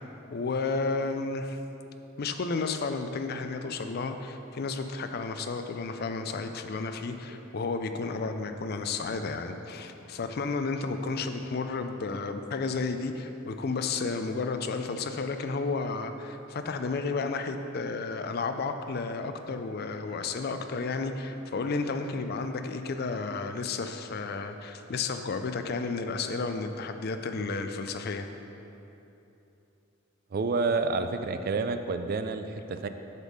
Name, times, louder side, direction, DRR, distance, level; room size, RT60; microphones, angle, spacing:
voice 1, 0.3-1.6 2.2-28.3, left 4 dB, 50° left, 7 dB, 0.4 m, -32 dB
voice 2, 30.3-32.9, right 4 dB, 45° right, 8 dB, 0.3 m, -29 dB
8.1 x 3.6 x 6.3 m, 3.0 s
head